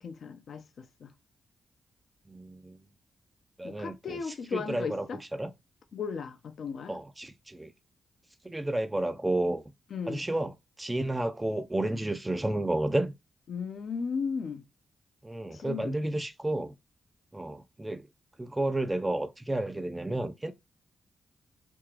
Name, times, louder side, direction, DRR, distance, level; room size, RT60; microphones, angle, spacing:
voice 1, 0.0-1.1 3.6-5.2 5.9-7.0 9.9-10.3 13.5-14.6 15.5-15.9, left 5 dB, 70° left, 0.6 m, -36 dB
voice 2, 2.3-2.8 3.6-4.2 4.5-5.1 5.3-5.5 6.9-7.7 8.4-9.6 10.1-10.5 10.8-13.1 15.2-16.7 17.3-18.1 18.4-20.5, right 1 dB, 20° right, 0.5 m, -31 dB
3.5 x 2.8 x 3.2 m
hypercardioid pair, 40°, 0 cm